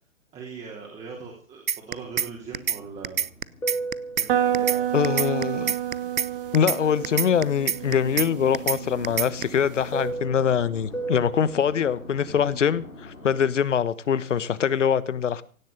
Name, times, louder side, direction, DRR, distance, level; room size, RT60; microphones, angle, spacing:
voice 1, 0.3-3.2 4.2-5.2 12.2-12.4, right 5 dB, 15° right, -1 dB, 3.4 m, -40 dB
sound 1, 1.7-2.3 2.5-2.8 3.0-4.3 4.5-4.8 5.0-6.3 6.5-6.8 7.0-8.3 8.5-8.8 9.0-9.4, right 8 dB, 80° right, 0.8 m, -25 dB
Fixed-wing aircraft airplane, 2.0-7.4 7.7-13.6, right 2 dB, 85° left, 3.9 m, -36 dB
sound 2, 4.3-10.1, right 11 dB, 40° right, 2.0 m, -29 dB
voice 2, 4.9-5.7 6.5-15.4, left 8 dB, 60° left, 18 dB, 1.4 m, -23 dB
17.0 x 7.4 x 8.9 m, 0.43 s
figure-of-eight pair, 130°, 40 cm